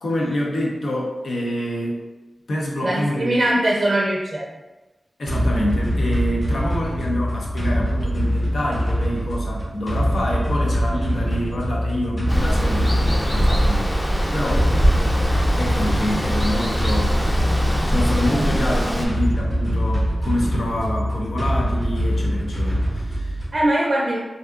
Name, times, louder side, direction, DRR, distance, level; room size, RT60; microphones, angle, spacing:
voice 1, 0.0-2.1 2.5-3.3 5.2-13.9 14.3-14.7 15.6-17.2 17.9-23.4, left 1 dB, 75° left, -2 dB, 0.6 m, -26 dB
voice 2, 2.8-4.6 23.5-24.2, right 1 dB, 60° right, -3 dB, 0.5 m, -21 dB
sound 1, 5.3-23.7, equal, 40° left, 1.2 m, -23 dB
Water, 12.3-19.1, equal, 20° left, 0.6 m, -22 dB
3.5 x 2.6 x 2.3 m, 1.1 s
cardioid pair, 40°, 0 cm